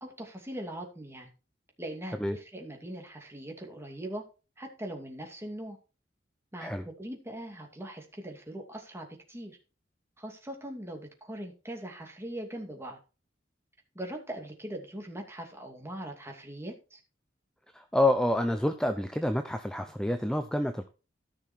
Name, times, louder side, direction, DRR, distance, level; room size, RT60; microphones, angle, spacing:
voice 1, 0.0-1.3 1.8-4.2 4.6-5.8 6.5-9.6 10.2-13.0 13.9-17.0, right 1 dB, 15° right, 2 dB, 2.5 m, -41 dB
voice 2, 17.7-20.9, left 1 dB, 5° left, 7 dB, 0.7 m, -28 dB
14.0 x 6.0 x 4.5 m, 0.32 s
head